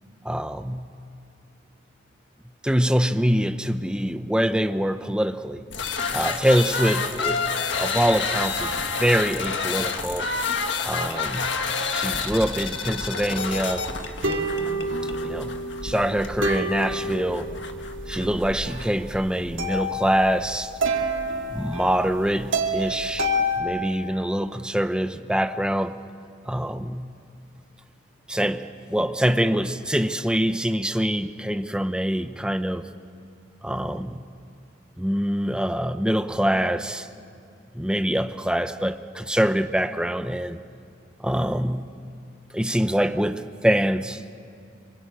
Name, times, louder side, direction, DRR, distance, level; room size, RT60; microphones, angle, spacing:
voice 1, 0.2-0.9 2.6-5.6 6.1-10.3 10.8-11.5 11.9-13.9 15.2-15.5 15.8-17.5 18.1-20.7 21.5-23.3 23.6-26.0 26.5-27.1 28.3-32.9 33.6-34.2 35.0-37.1 37.7-40.6 41.2-41.9 42.5-44.2, equal, 5° right, 9 dB, 0.7 m, -24 dB
sound 1, 5.7-18.9, left 4 dB, 70° left, 1.6 m, -29 dB
sound 2, 13.1-23.6, right 1 dB, 85° right, 2.7 m, -29 dB
27.5 x 24.5 x 8.8 m, 2.4 s
head